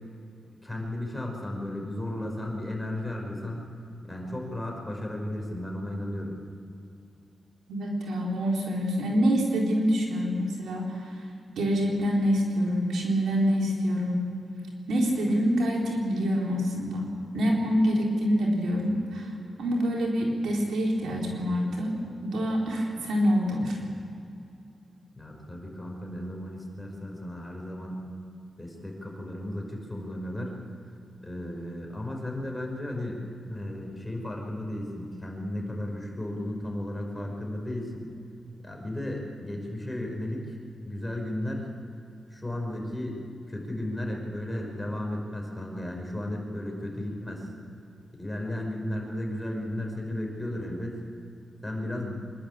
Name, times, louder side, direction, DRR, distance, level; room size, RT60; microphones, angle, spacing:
voice 1, 0.5-3.6 4.0-6.4 25.1-28.0 28.6-30.6 31.2-38.1 38.6-40.6 40.8-41.7 42.3-43.2 43.5-47.5 48.2-51.0 51.6-52.2, left 1 dB, 10° left, 0 dB, 5.5 m, -34 dB
voice 2, 7.7-11.1 11.6-14.3 14.9-17.1 17.3-19.3 19.6-23.8, equal, 85° right, -2 dB, 4.2 m, -26 dB
25.5 x 12.0 x 8.8 m, 2.6 s
cardioid pair, 65°, 0 cm